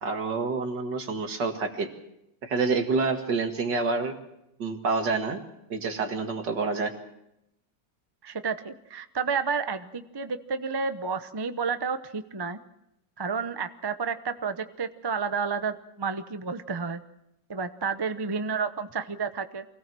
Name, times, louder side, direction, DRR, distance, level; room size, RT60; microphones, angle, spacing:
voice 1, 0.0-1.9 2.4-4.1 4.6-5.4 5.7-6.9, right 4 dB, 70° right, 4 dB, 2.6 m, -28 dB
voice 2, 8.2-12.6 13.2-17.0 17.5-19.6, right 5 dB, 30° right, 9 dB, 0.4 m, -31 dB
24.5 x 17.5 x 6.2 m, 0.83 s
omnidirectional pair, 2.0 m